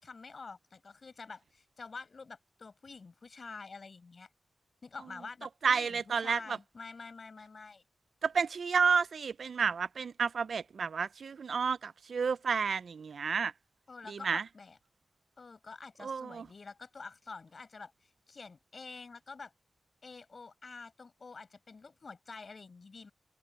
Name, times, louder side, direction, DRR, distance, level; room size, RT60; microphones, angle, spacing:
voice 1, 0.0-4.3 4.8-7.8 13.9-14.8 15.4-19.5 20.0-23.1, left 4 dB, 65° left, 5.2 m, -48 dB
voice 2, 5.6-6.6 8.2-13.5 14.1-14.5 16.0-16.5, right 5 dB, 80° right, 0.4 m, -31 dB
open air
cardioid pair, 50°, 0 cm